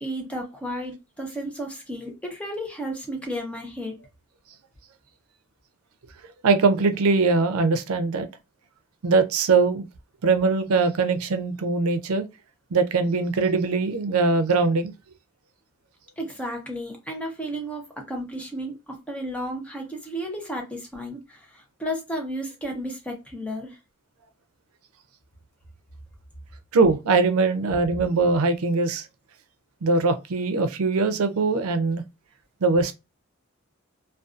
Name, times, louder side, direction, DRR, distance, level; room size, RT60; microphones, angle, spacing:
voice 1, 0.0-4.0 16.2-23.8, equal, 5° left, 0.6 m, -33 dB
voice 2, 6.4-8.3 9.0-9.9 10.2-12.2 12.7-14.9 26.7-29.1 29.8-32.0 32.6-32.9, right 4 dB, 90° right, 0.4 m, -21 dB
2.5 x 2.3 x 2.4 m
head